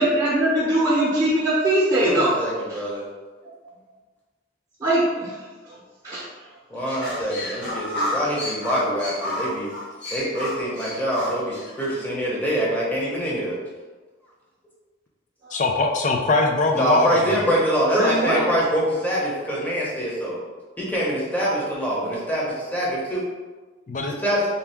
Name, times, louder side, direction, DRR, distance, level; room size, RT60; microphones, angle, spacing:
voice 1, 0.0-2.8 4.8-5.4 5.6-5.8 6.0-6.3 15.4-15.6 17.9-18.5, right 1 dB, 20° right, -9 dB, 0.9 m, -21 dB
voice 2, 2.0-3.0 6.7-9.7 10.1-13.5 16.7-20.4 20.8-23.2 24.2-24.5, equal, 10° left, -6 dB, 1.0 m, -25 dB
sound 1, 6.9-11.9, left 1 dB, 70° left, 0.8 m, -30 dB
voice 3, 15.5-17.3 23.9-24.2, left 3 dB, 45° left, 2 dB, 0.5 m, -21 dB
3.4 x 2.8 x 3.5 m, 1.3 s
head